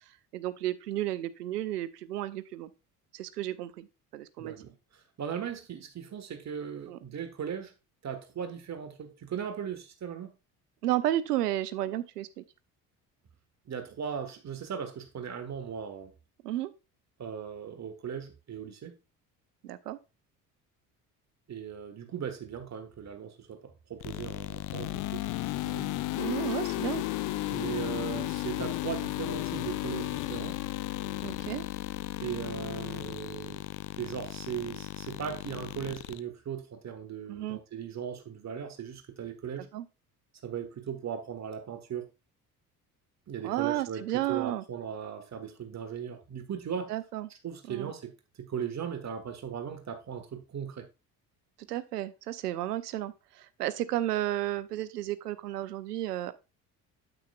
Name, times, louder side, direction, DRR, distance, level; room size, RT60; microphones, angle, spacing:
voice 1, 0.3-2.7 3.1-3.9 4.1-4.7 6.9-7.0 10.8-12.4 16.4-16.7 19.6-20.0 26.2-27.0 31.2-31.6 37.3-37.6 39.7-39.9 43.4-44.6 46.9-47.3 47.7-47.9 51.7-56.3, right 13 dB, 75° right, 0.7 m, -32 dB
voice 2, 4.4-4.7 5.2-7.7 8.0-10.3 13.7-16.1 17.2-19.0 21.5-25.9 27.5-30.6 32.2-33.6 34.0-39.7 40.4-42.1 43.3-46.9 47.4-48.1 48.4-50.9, right 8 dB, 35° right, 1.5 m, -38 dB
sound 1, 24.0-36.2, left 17 dB, 40° left, 0.6 m, -34 dB
9.2 x 7.9 x 2.3 m
figure-of-eight pair, 55°, 48 cm